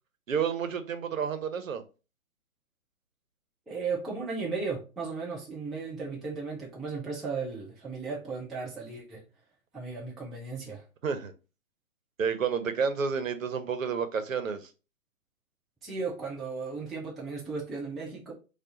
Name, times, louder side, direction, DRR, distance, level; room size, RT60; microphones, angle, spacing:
voice 1, 0.3-1.8 11.0-11.3 12.2-14.7, right 6 dB, 70° right, 0.8 m, -30 dB
voice 2, 3.7-9.2 9.7-10.8 15.8-18.3, right 4 dB, ahead, 0.3 m, -35 dB
4.6 x 2.4 x 2.8 m
hypercardioid pair, 160°, 42 cm